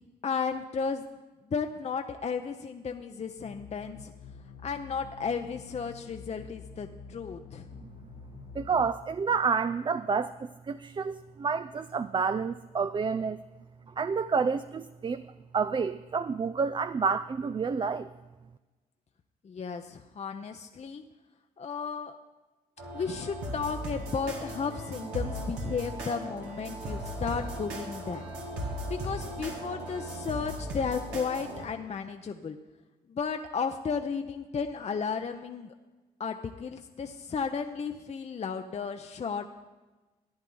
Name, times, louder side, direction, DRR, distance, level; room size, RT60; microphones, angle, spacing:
voice 1, 0.2-1.0 1.5-4.1 4.6-7.7 19.4-21.0 21.6-22.2 22.9-28.3 28.9-32.6 33.1-35.7 36.2-39.5, left 5 dB, 40° left, 6 dB, 0.7 m, -34 dB
sound 1, 3.4-8.9, left 5 dB, 70° left, 1.0 m, -47 dB
voice 2, 8.5-10.3 10.7-13.4 14.0-15.2 15.5-18.1, right 5 dB, 30° right, 11 dB, 0.4 m, -29 dB
sound 2, 22.8-31.7, right 1 dB, 85° right, 1.8 m, -37 dB
14.0 x 9.9 x 3.9 m, 1.2 s
supercardioid pair, 55°, 18 cm